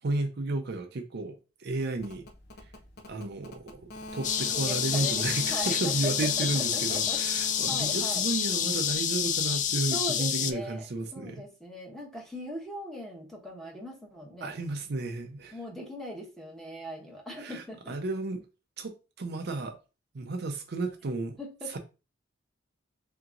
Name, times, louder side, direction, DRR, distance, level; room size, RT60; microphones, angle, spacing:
voice 1, 0.0-2.2 3.1-11.4 14.4-15.6 17.4-18.4 18.8-19.8 20.1-21.4 21.7-21.8, right 2 dB, 60° right, 0.6 m, -33 dB
sound 1, 1.9-9.8, left 1 dB, 60° left, 0.8 m, -44 dB
sound 2, 4.2-10.5, left 9 dB, 40° left, 0.3 m, -28 dB
voice 2, 4.5-6.1 6.4-7.2 7.7-8.2 9.9-10.8 11.1-14.6 15.5-17.9 21.4-21.8, equal, ahead, 1.1 m, -40 dB
3.6 x 2.9 x 3.7 m
head